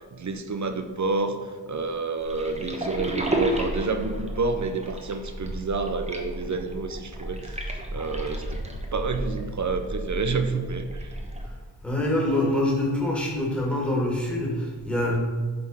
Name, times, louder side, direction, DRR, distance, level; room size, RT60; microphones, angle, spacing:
voice 1, 0.0-8.6 8.9-11.2, right 4 dB, 45° right, 8 dB, 0.7 m, -29 dB
sound 1, 2.2-11.5, right 1 dB, 15° right, 1.2 m, -32 dB
voice 2, 11.8-15.2, left 1 dB, 5° left, -3 dB, 2.2 m, -25 dB
7.6 x 4.3 x 5.5 m, 1.5 s
cardioid pair, 60°, 39 cm